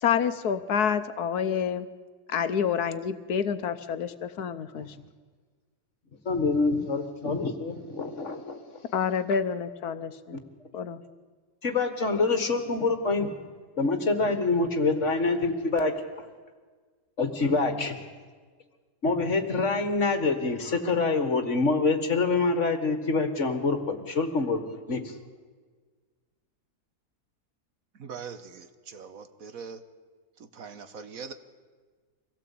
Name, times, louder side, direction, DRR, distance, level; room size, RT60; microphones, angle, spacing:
voice 1, 0.0-1.9 2.3-4.9 8.9-10.4 10.7-11.0, left 7 dB, 70° left, 12 dB, 1.4 m, -28 dB
voice 2, 6.3-8.8 10.3-10.4 11.6-13.3 13.8-15.9 17.2-18.0 19.0-24.6 24.9-25.1, left 3 dB, 50° left, 8 dB, 2.0 m, -26 dB
voice 3, 28.0-29.8 30.5-31.3, right 6 dB, 60° right, 10 dB, 1.5 m, -41 dB
24.5 x 17.0 x 8.5 m, 1.5 s
omnidirectional pair, 1.7 m